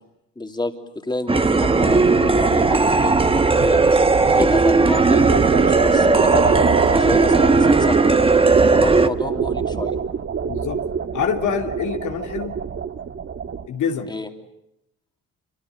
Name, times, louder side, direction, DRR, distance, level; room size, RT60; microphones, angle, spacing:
voice 1, 0.4-0.7 1.0-3.8 4.3-8.2 8.7-10.0 14.1-14.3, left 2 dB, 15° left, 5 dB, 3.1 m, -29 dB
sound 1, 1.3-9.1, right 3 dB, 20° right, 1.2 m, -17 dB
sound 2, 1.6-13.7, right 6 dB, 45° right, 1.7 m, -24 dB
voice 2, 10.4-10.8 11.1-12.6 13.7-14.1, left 7 dB, 75° left, 4 dB, 2.9 m, -25 dB
26.5 x 25.0 x 8.3 m, 0.84 s
cardioid pair, 90°, 30 cm